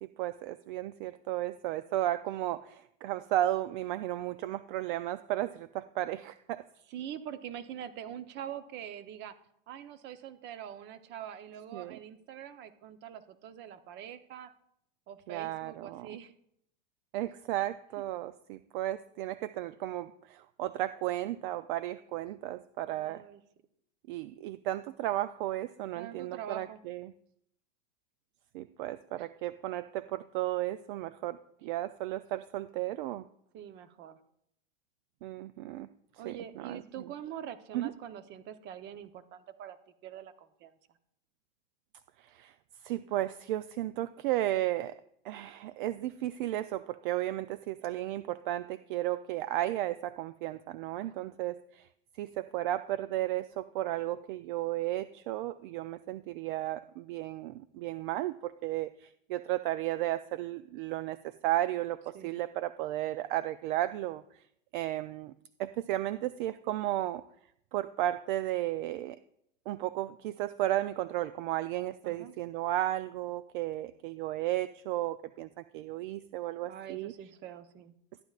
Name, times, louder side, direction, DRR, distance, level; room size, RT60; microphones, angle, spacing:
voice 1, 0.0-6.6 11.7-12.0 15.3-16.1 17.1-23.2 24.1-27.1 28.5-33.3 35.2-35.9 36.2-36.8 37.7-37.9 42.2-42.5 42.8-45.0 45.2-51.9 52.2-64.2 64.7-65.3 65.6-67.2 67.7-69.2 69.7-77.1, right 14 dB, 55° right, 14 dB, 0.5 m, -34 dB
voice 2, 6.9-9.3 9.7-14.5 15.1-16.3 22.9-23.4 26.0-26.8 29.2-29.3 33.5-34.2 36.2-39.8 40.0-40.7 51.0-51.3 62.1-62.4 72.0-72.3 76.7-77.9, right 9 dB, 35° right, 10 dB, 0.8 m, -44 dB
13.5 x 10.5 x 2.4 m, 0.72 s
supercardioid pair, 130°, 30 cm